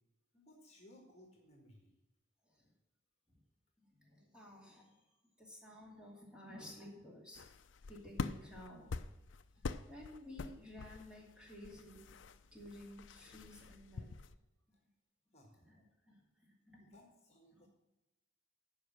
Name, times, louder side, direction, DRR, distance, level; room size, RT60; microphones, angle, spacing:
voice 1, 0.3-1.9 15.3-15.7 16.8-17.7, left 1 dB, 35° left, 1 dB, 1.6 m, -62 dB
voice 2, 3.8-4.9 5.4-7.4 7.8-9.0 9.9-12.1 12.5-14.1 15.7-15.8 16.1-16.2 16.7-16.9, left 1 dB, 5° right, -3 dB, 2.6 m, -53 dB
sound 1, 7.3-14.4, left 4 dB, 75° left, 0.5 m, -46 dB
9.9 x 5.7 x 7.5 m, 1.0 s
head